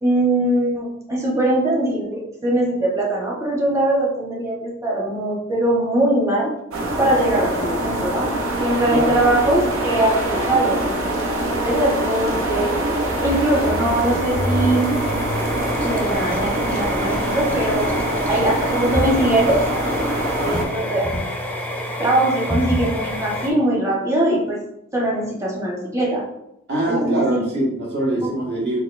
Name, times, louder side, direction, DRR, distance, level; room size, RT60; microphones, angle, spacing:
voice 1, 0.0-6.6 7.0-8.4 8.6-10.9 11.6-12.8 13.2-14.9 15.8-18.0 18.3-19.7 20.4-21.2 21.7-24.6 24.9-26.3 26.9-27.4, right 1 dB, 15° right, -3 dB, 0.9 m, -21 dB
sound 1, 6.7-20.6, right 1 dB, 75° right, 0.7 m, -24 dB
sound 2, 11.3-23.5, equal, 5° left, 0.4 m, -28 dB
voice 2, 26.7-28.8, right 1 dB, 60° right, -5 dB, 1.4 m, -23 dB
4.0 x 3.1 x 2.5 m, 0.82 s
head